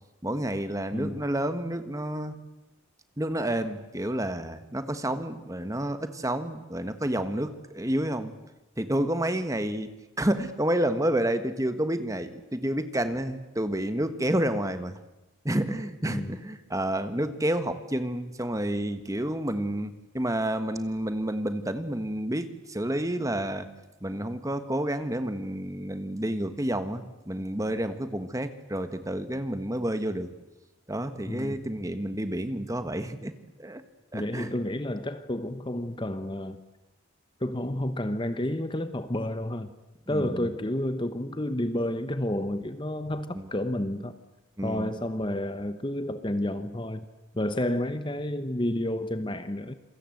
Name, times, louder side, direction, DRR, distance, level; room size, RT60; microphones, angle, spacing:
voice 1, 0.2-2.4 3.2-8.3 8.8-9.9 10.2-15.0 15.4-23.7 24.0-30.3 30.9-33.3 33.6-33.8 34.1-34.5 40.1-40.5 43.3-43.5 44.6-44.9, right 1 dB, 15° right, 10 dB, 1.4 m, -29 dB
voice 2, 0.9-1.3 16.0-16.4 31.3-31.6 34.1-36.6 37.4-39.7 40.1-44.2 44.6-47.1 47.4-49.7, left 1 dB, 20° left, 11 dB, 0.9 m, -30 dB
27.5 x 23.0 x 7.9 m, 0.98 s
head